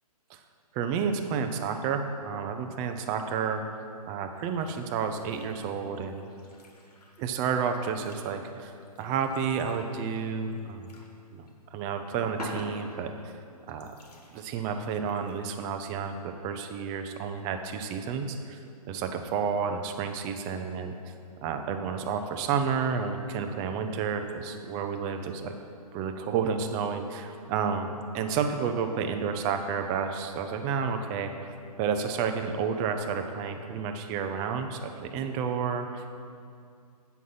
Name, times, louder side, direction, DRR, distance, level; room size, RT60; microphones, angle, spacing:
voice 1, 0.7-3.6 4.1-6.2 7.2-8.7 9.0-10.9 11.3-13.3 13.7-13.9 14.3-18.6 18.9-20.9 21.4-25.5 25.9-31.5 31.8-36.1, right 6 dB, 20° right, 6 dB, 0.4 m, -31 dB
sound 1, 4.3-5.6 5.9-11.2 11.5-11.6 12.4-13.3 13.7-15.4, left 1 dB, 75° left, 1.8 m, -47 dB
8.2 x 6.1 x 5.4 m, 2.4 s
figure-of-eight pair, 130°, 20 cm